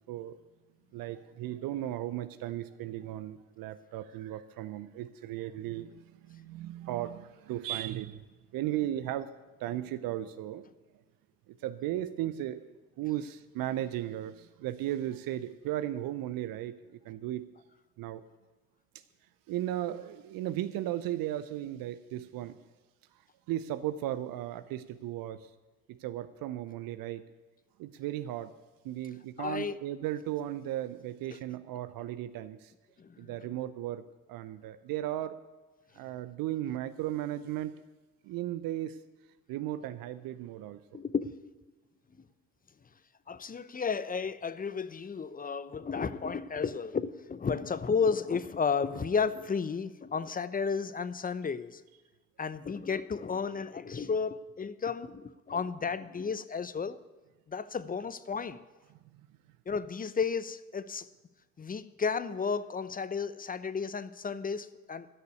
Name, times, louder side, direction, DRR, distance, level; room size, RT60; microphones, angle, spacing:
voice 1, 0.1-0.4 0.9-8.2 8.5-9.3 9.6-10.7 11.5-12.7 13.0-17.4 18.0-18.2 19.5-22.6 23.5-25.5 25.9-27.2 27.8-28.5 28.8-32.7 33.2-34.0 34.3-35.3 35.9-37.7 38.2-39.0 39.5-40.8, right 13 dB, 60° right, 0.7 m, -36 dB
voice 2, 29.4-29.8 33.0-33.5 40.9-41.3 43.3-51.8 52.4-57.0 57.5-58.6 59.7-61.1 61.6-65.1, left 5 dB, 20° left, 0.8 m, -33 dB
13.5 x 6.8 x 9.4 m
figure-of-eight pair, 50°, 39 cm